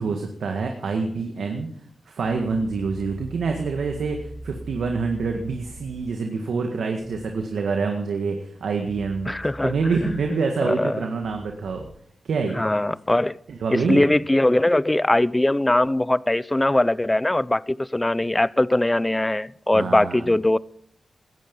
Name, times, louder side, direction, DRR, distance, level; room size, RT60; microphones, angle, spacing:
voice 1, 0.0-1.7 2.1-9.3 9.6-11.9 12.2-12.7 13.5-14.1 19.7-20.3, right 4 dB, 80° right, 1.8 m, -26 dB
sound 1, 2.2-6.0 7.0-7.3 8.8-10.2 11.2-11.9, right 1 dB, 5° right, 3.8 m, -41 dB
voice 2, 9.3-9.7 10.0-11.1 12.6-13.4 13.7-20.6, left 1 dB, 20° left, 0.6 m, -21 dB
17.5 x 14.0 x 5.4 m
cardioid pair, 50°, 0 cm